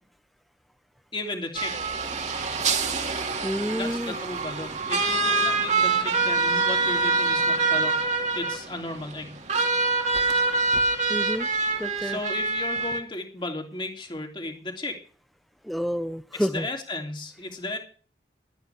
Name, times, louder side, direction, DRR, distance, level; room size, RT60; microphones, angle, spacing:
voice 1, 1.1-1.8 3.7-8.0 8.3-9.4 12.0-15.0 16.3-17.8, left 2 dB, 25° left, 3.0 m, -34 dB
sound 1, 1.5-13.0, right 3 dB, 40° right, 2.2 m, -25 dB
voice 2, 3.4-4.1 11.1-11.5 11.8-12.2 15.6-16.7, equal, ahead, 0.7 m, -29 dB
19.0 x 12.5 x 3.5 m
head